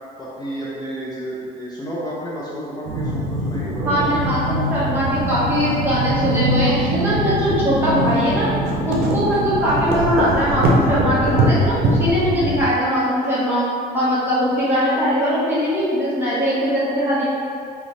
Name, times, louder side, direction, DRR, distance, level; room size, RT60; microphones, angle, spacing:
voice 1, 0.2-3.9, equal, 25° left, -7 dB, 0.7 m, -31 dB
sound 1, 2.9-12.6, right 1 dB, 75° right, 0.6 m, -22 dB
voice 2, 3.8-8.5 8.8-13.6 13.9-17.3, equal, 10° right, -11 dB, 1.3 m, -20 dB
3.8 x 2.3 x 3.2 m, 2.3 s
cardioid pair, 110°, 17 cm